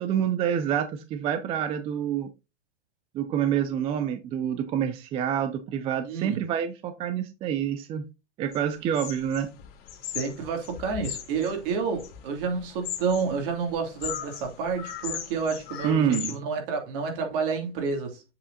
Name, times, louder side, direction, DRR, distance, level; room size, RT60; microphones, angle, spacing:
voice 1, 0.0-2.3 3.1-8.0 8.4-9.5 15.8-16.3, right 9 dB, 15° right, 0.4 m, -27 dB
voice 2, 6.0-6.4 10.0-18.2, right 5 dB, 50° right, 2.7 m, -29 dB
sound 1, 8.5-8.6 8.9-16.4, left 10 dB, 35° left, 1.7 m, -38 dB
7.5 x 6.1 x 2.7 m
hypercardioid pair, 140°, 35 cm